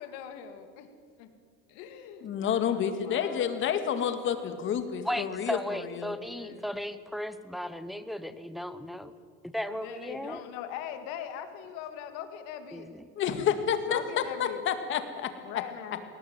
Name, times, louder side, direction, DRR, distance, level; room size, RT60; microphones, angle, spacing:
voice 1, 0.0-0.9 1.2-1.3 1.7-3.5 6.0-6.8 9.7-12.9 13.9-14.6 15.4-16.0, left 9 dB, 75° left, 8 dB, 2.6 m, -41 dB
voice 2, 2.2-6.1 13.2-15.3, left 8 dB, 40° left, 9 dB, 2.2 m, -29 dB
voice 3, 5.0-9.1 9.4-10.4 12.7-13.1, equal, ahead, 11 dB, 0.9 m, -35 dB
21.0 x 18.0 x 9.0 m, 2.1 s
cardioid pair, 145°, 30 cm